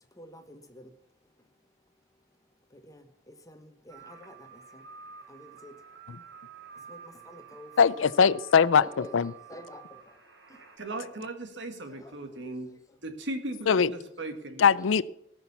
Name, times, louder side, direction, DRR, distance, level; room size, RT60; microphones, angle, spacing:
voice 1, 0.1-0.9 2.7-4.9 5.3-5.8 6.7-8.0 8.8-10.2 10.5-10.6 11.9-12.5 12.9-13.0 14.8-15.0, left 1 dB, 20° left, 1.3 m, -49 dB
sound 1, 3.9-10.8, right 7 dB, 90° right, 3.0 m, -50 dB
voice 2, 7.8-8.8 9.1-9.3 13.7-13.9 14.6-15.0, left 6 dB, 80° left, 0.5 m, -20 dB
voice 3, 10.8-12.7 13.0-14.6, right 2 dB, 65° right, 1.9 m, -37 dB
18.0 x 6.4 x 7.0 m
head